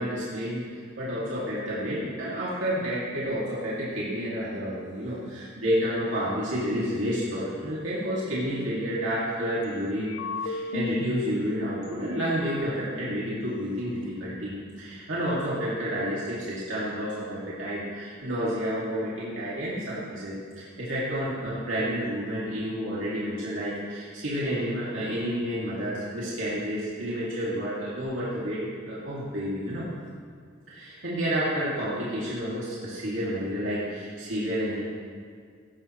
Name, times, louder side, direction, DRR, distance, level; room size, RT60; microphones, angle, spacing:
voice 1, 0.0-10.1 10.4-28.6 28.9-29.8 30.7-34.8, equal, 80° right, -9 dB, 2.5 m, -30 dB
sound 1, 10.0-11.3 11.8-11.9 12.2-13.5, left 3 dB, 75° left, 0.7 m, -35 dB
16.0 x 11.0 x 3.2 m, 2.1 s
head